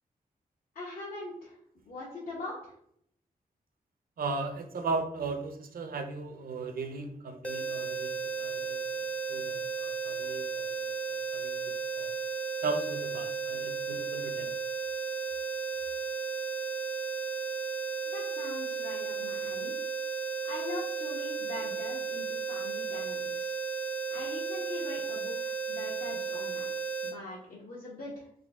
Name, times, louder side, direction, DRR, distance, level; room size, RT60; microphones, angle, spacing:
voice 1, 0.7-1.6 1.8-2.7 18.1-19.8 20.4-23.5 24.1-26.7 27.0-28.3, left 2 dB, 80° left, -7 dB, 1.1 m, -42 dB
voice 2, 4.2-8.1 8.4-10.6 11.3-11.6 11.9-12.1 12.6-14.5, right 3 dB, 80° right, 6 dB, 0.6 m, -36 dB
sound 1, 7.4-27.2, right 5 dB, 10° left, 0.3 m, -34 dB
3.8 x 2.7 x 3.5 m, 0.69 s
wide cardioid pair, 115°, 15 cm